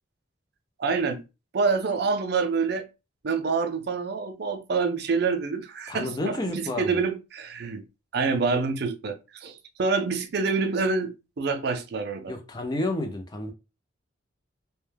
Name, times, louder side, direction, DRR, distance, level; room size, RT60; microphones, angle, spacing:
voice 1, 0.8-1.2 1.5-2.9 3.2-7.8 8.1-12.3, right 4 dB, 55° right, 0.4 m, -27 dB
voice 2, 5.9-7.0 12.3-13.5, left 2 dB, 20° left, 0.4 m, -30 dB
2.2 x 2.1 x 3.2 m
head